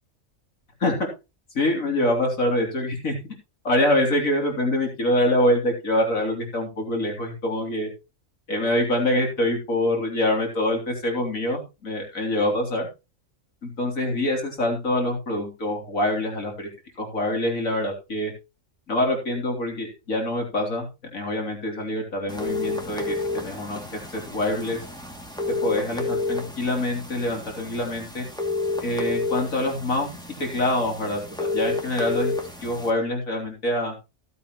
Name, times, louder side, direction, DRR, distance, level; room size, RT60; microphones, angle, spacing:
voice 1, 1.5-3.1 3.7-7.9 8.5-12.9 13.6-16.7 17.0-18.3 18.9-23.8 24.1-24.8 25.6-28.2 28.8-32.3 32.6-33.9, left 1 dB, 80° left, 1 dB, 3.8 m, -25 dB
sound 1, 22.3-32.9, left 3 dB, 5° left, 2.5 m, -30 dB
16.0 x 8.3 x 3.1 m, 0.27 s
omnidirectional pair, 1.4 m